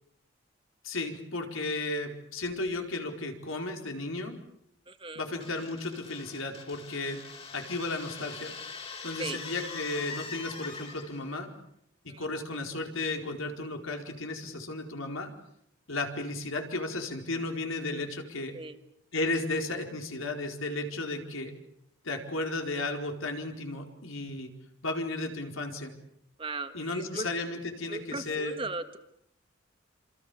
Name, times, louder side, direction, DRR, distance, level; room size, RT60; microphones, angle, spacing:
voice 1, 0.8-4.4 5.1-7.2 7.5-8.5 9.0-11.5 12.0-15.3 15.9-18.5 19.1-21.5 22.0-24.5 24.8-25.9 26.7-28.5, left 2 dB, 85° left, 3 dB, 4.6 m, -34 dB
voice 2, 4.9-5.2 9.2-9.4 12.1-12.3 18.5-18.8 26.4-27.3 27.9-29.0, right 3 dB, 25° right, 8 dB, 1.8 m, -37 dB
sound 1, 5.4-11.3, left 4 dB, 30° left, 3.6 m, -43 dB
27.5 x 27.0 x 7.1 m, 0.73 s
head